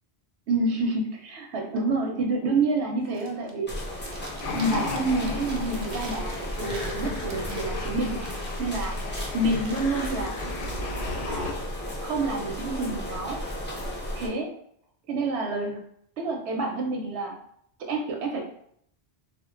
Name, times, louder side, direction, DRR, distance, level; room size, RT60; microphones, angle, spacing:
voice 1, 0.5-3.7 4.4-10.3 11.3-11.5 12.0-13.4 14.1-14.5 15.1-15.8 16.2-17.3 17.8-18.4, right 2 dB, 90° right, 2 dB, 0.9 m, -28 dB
Chewing mastication, 3.0-3.6 3.9-10.9, right 3 dB, 55° right, 0.6 m, -45 dB
sound 1, 3.7-14.3, left 1 dB, 15° left, 0.5 m, -34 dB
sound 2, 4.4-11.5, left 3 dB, 65° left, 0.7 m, -35 dB
2.5 x 2.1 x 3.5 m, 0.69 s
omnidirectional pair, 1.1 m